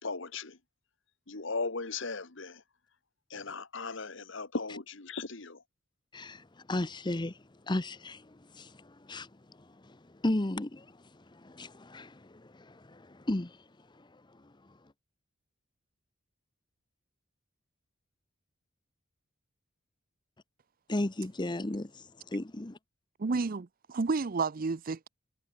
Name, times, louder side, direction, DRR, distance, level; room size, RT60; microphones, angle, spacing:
voice 1, 0.0-0.6 1.3-2.6 3.3-5.6, left 3 dB, 60° left, 1.6 m, -37 dB
voice 2, 6.1-7.4 7.7-9.3 9.6-13.6 14.0-14.2 20.9-22.8, left 1 dB, 20° left, 0.8 m, -35 dB
voice 3, 23.2-25.1, right 4 dB, 45° right, 0.5 m, -31 dB
head